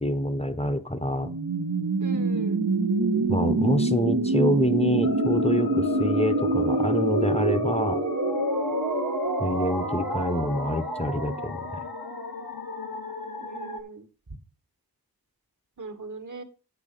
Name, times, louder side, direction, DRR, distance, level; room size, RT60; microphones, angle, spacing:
voice 1, 0.0-1.3 3.3-8.0 9.4-11.7, equal, 15° left, 8 dB, 0.9 m, -26 dB
sound 1, 1.2-13.0, right 2 dB, 65° right, 1.4 m, -26 dB
voice 2, 2.0-2.6 13.4-14.1 15.8-16.4, right 3 dB, 50° right, 7 dB, 1.6 m, -39 dB
sound 2, 5.0-13.8, left 5 dB, 60° left, 1.2 m, -36 dB
9.1 x 4.8 x 6.6 m, 0.39 s
wide cardioid pair, 60°, 38 cm